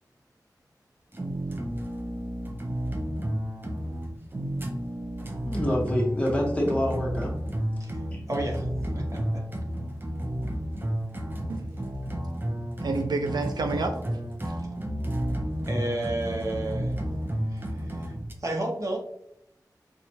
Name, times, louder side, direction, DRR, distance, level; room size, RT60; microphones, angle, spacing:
sound 1, 1.1-18.3, equal, 30° right, 0.6 m, -32 dB
voice 1, 5.4-7.3 8.1-8.2, equal, 20° left, -2 dB, 1.1 m, -26 dB
voice 2, 8.3-8.7 8.9-9.4 15.3-16.9 17.5-18.1 18.4-19.0, right 1 dB, 50° right, 0 dB, 1.0 m, -32 dB
voice 3, 12.8-14.0, right 3 dB, 80° right, 5 dB, 0.4 m, -28 dB
4.3 x 2.4 x 2.7 m, 0.73 s
wide cardioid pair, 65°, 7 cm